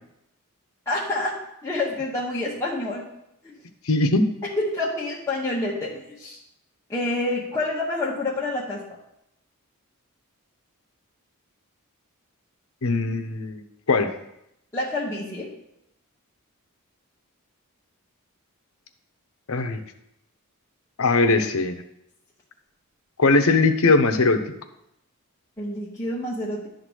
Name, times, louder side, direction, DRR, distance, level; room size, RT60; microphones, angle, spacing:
voice 1, 0.9-3.0 3.4-3.5 4.6-6.4 6.9-8.8 14.7-15.5 25.6-26.7, left 2 dB, 15° left, -7 dB, 1.3 m, -28 dB
voice 2, 3.9-4.3 12.8-14.1 19.5-19.8 21.0-21.8 23.2-24.4, left 3 dB, 65° left, 7 dB, 0.8 m, -20 dB
11.0 x 3.9 x 6.3 m, 0.81 s
head